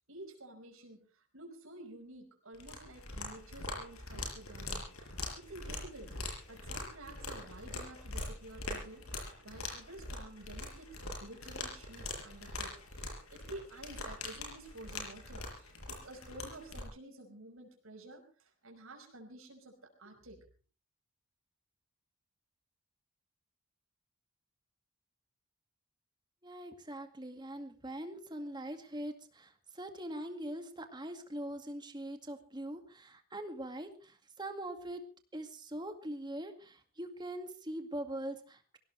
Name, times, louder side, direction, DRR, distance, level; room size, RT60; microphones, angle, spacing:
voice 1, 0.1-4.9 5.3-9.1 9.4-20.5, right 1 dB, 75° right, 3 dB, 5.5 m, -51 dB
sound 1, 2.5-16.9, left 2 dB, 85° left, 7.0 m, -43 dB
voice 2, 26.4-35.0 35.3-38.8, right 1 dB, 20° right, 6 dB, 2.1 m, -42 dB
23.0 x 17.0 x 3.4 m, 0.37 s
head